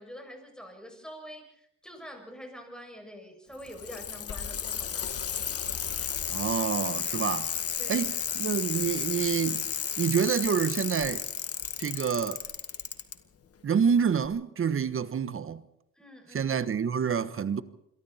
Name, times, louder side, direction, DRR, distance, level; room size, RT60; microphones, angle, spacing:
voice 1, 0.0-5.1 7.8-8.1 16.0-16.6, equal, ahead, 7.3 m, -46 dB
Bicycle, 3.5-13.1 14.2-14.3, left 8 dB, 50° left, 2.0 m, -33 dB
voice 2, 6.3-7.5 7.9-9.6 10.0-11.2 11.8-12.4 13.6-15.6 16.3-17.6, right 7 dB, 45° right, 1.4 m, -27 dB
27.5 x 22.5 x 4.4 m
cardioid pair, 90°, 30 cm